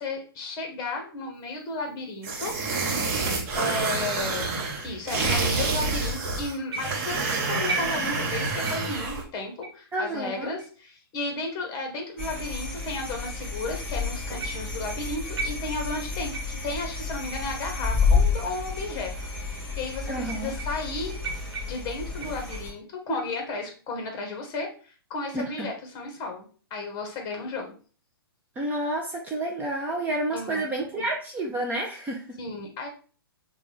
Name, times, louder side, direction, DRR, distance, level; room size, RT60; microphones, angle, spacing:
voice 1, 0.0-2.5 3.5-4.6 4.8-21.2 21.6-26.4 26.7-27.7 30.3-31.0 32.4-32.9, left 2 dB, 30° left, 3 dB, 1.1 m, -34 dB
sound 1, 2.2-9.2, right 3 dB, 40° right, 0.9 m, -28 dB
sound 2, 6.7-7.2 7.7-8.3 8.6-9.0 9.6-9.8 10.6-10.7 11.6-11.7 12.5-12.6 14.4-14.8 15.4-16.0 16.3-16.7 17.3-17.5 18.3-18.4 19.2-19.3 20.2-20.9 21.2-22.8 23.2-23.6 24.1-24.5, right 4 dB, 75° right, 0.9 m, -37 dB
voice 2, 9.9-10.5 20.1-20.5 25.3-25.7 28.6-32.4, right 1 dB, 15° right, -1 dB, 0.5 m, -30 dB
sound 3, 12.2-22.7, left 4 dB, 10° left, 1.7 m, -30 dB
5.1 x 2.3 x 3.1 m, 0.39 s
hypercardioid pair, 135°, 13 cm